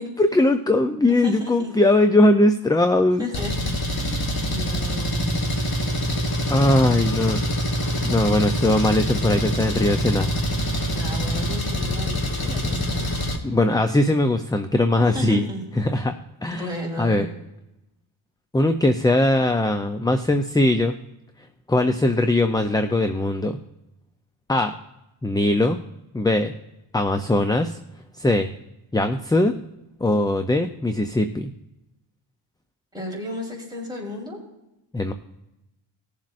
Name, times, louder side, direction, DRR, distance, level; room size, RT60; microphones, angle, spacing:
voice 1, 0.2-3.3 6.5-7.4 8.0-10.3 10.7-10.9 13.4-15.4 15.8-16.1 16.4-16.7 17.0-17.3 18.5-20.9 21.7-23.5 24.5-24.7 25.2-25.8 26.1-26.5 26.9-27.8 28.2-28.5 28.9-29.5 30.0-31.5 34.9-35.1, left 1 dB, 10° left, 8 dB, 0.5 m, -20 dB
voice 2, 1.1-1.7 3.2-5.4 10.9-13.1 15.0-15.6 16.5-17.3 32.9-34.4, left 2 dB, 10° right, -4 dB, 3.9 m, -34 dB
Engine, 3.3-13.4, equal, 45° left, 2.0 m, -25 dB
19.5 x 7.4 x 2.5 m, 0.90 s
wide cardioid pair, 115°, 49 cm